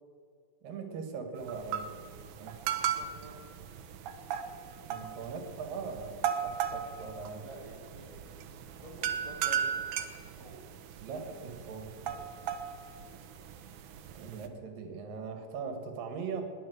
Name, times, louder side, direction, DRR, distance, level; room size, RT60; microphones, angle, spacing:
voice 1, 0.6-1.9 2.4-2.6 4.9-7.5 11.0-11.9 13.9-16.4, right 5 dB, 90° right, 6 dB, 3.4 m, -40 dB
sound 1, 1.4-14.5, right 8 dB, 70° right, 2.3 m, -37 dB
voice 2, 2.6-3.4 7.4-8.4 8.8-9.7 10.3-10.6 12.0-12.2, right 1 dB, 10° left, -1 dB, 1.7 m, -50 dB
20.5 x 7.2 x 7.9 m, 2.2 s
omnidirectional pair, 3.8 m